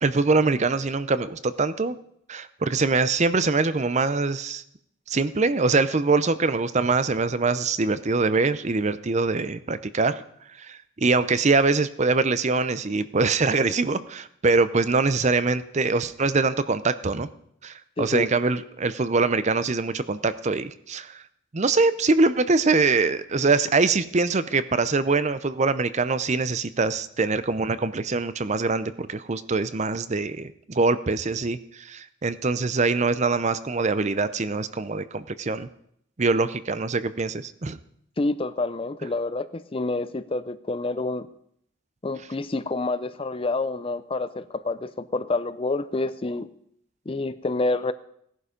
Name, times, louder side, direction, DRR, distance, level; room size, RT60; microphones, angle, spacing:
voice 1, 0.0-2.0 2.3-4.6 5.1-10.2 10.6-17.3 17.6-21.2 21.5-35.7 36.2-37.8, right 3 dB, 30° right, 14 dB, 0.6 m, -23 dB
voice 2, 38.2-41.3 42.0-46.5 47.1-47.9, left 2 dB, 25° left, 14 dB, 0.5 m, -28 dB
17.0 x 11.0 x 5.1 m, 0.70 s
head